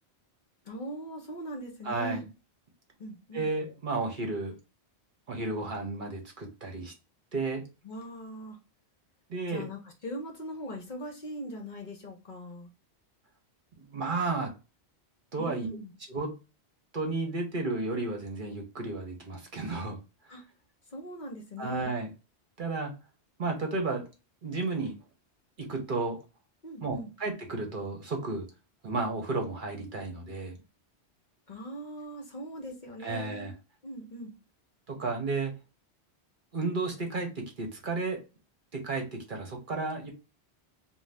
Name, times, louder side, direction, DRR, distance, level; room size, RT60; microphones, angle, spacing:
voice 1, 0.6-2.2 3.0-3.5 7.8-8.6 9.5-12.7 15.4-15.9 20.3-20.4 20.9-21.9 26.6-27.1 31.5-33.5 33.8-34.3, equal, 50° left, 2 dB, 0.8 m, -40 dB
voice 2, 1.8-2.2 3.3-4.5 5.3-6.9 7.3-7.6 9.3-9.7 13.8-14.5 15.3-15.7 16.1-16.3 16.9-20.0 20.2-20.3 21.6-22.1 22.6-22.9 23.4-24.0 24.4-24.9 25.6-26.2 26.8-28.5 28.8-30.6 33.0-33.5 34.9-35.5 36.5-38.2 38.7-40.1, right 3 dB, 50° right, 2 dB, 0.9 m, -32 dB
2.6 x 2.2 x 3.2 m, 0.30 s
omnidirectional pair, 1.1 m